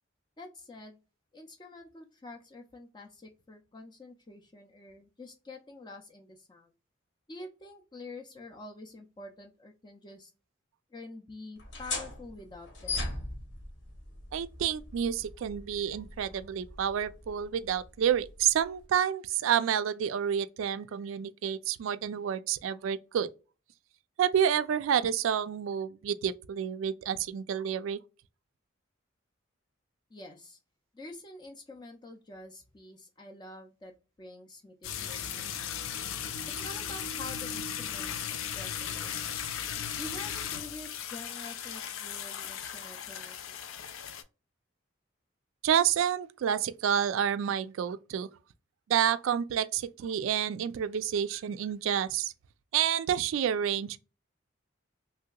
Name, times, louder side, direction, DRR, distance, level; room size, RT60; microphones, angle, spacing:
voice 1, 0.4-1.0 1.3-6.7 7.3-10.3 10.9-13.1 30.1-30.6 30.9-33.9 34.2-36.0 36.6-39.5 40.0-43.5, left 2 dB, 20° left, 0.4 m, -47 dB
sound 1, 11.6-18.8, left 2 dB, 65° left, 1.0 m, -40 dB
voice 2, 14.3-23.3 24.2-28.0 45.6-48.3 48.9-52.3 52.7-54.0, right 9 dB, 80° right, 0.3 m, -29 dB
sound 2, 34.8-44.2, left 8 dB, 85° left, 0.4 m, -37 dB
3.2 x 2.7 x 2.2 m
head